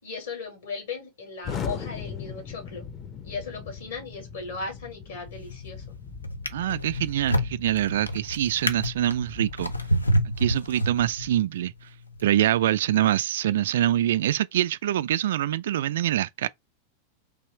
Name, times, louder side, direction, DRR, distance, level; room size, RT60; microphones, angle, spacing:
voice 1, 0.0-2.8 3.2-6.0, left 4 dB, 65° left, 2.8 m, -37 dB
Explosion, 1.4-11.4, left 6 dB, 30° left, 0.7 m, -40 dB
Drawer open or close, 5.3-5.7 6.2-11.4 12.1-12.3, equal, 85° left, 0.5 m, -28 dB
voice 2, 6.5-9.7 10.4-11.7 12.2-16.5, right 12 dB, 60° right, 0.3 m, -24 dB
3.9 x 3.0 x 4.4 m
figure-of-eight pair, 90°, 0 cm